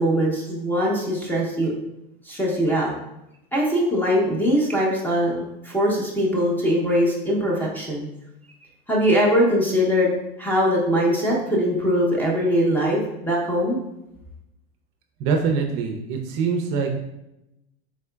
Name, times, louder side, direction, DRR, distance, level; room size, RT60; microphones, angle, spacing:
voice 1, 0.0-1.7 2.3-2.9 3.5-8.1 8.9-13.8, equal, 5° left, -3 dB, 0.6 m, -21 dB
voice 2, 15.2-17.0, right 5 dB, 45° right, 3 dB, 0.5 m, -24 dB
3.8 x 3.4 x 2.2 m, 0.88 s
supercardioid pair, 135°, 31 cm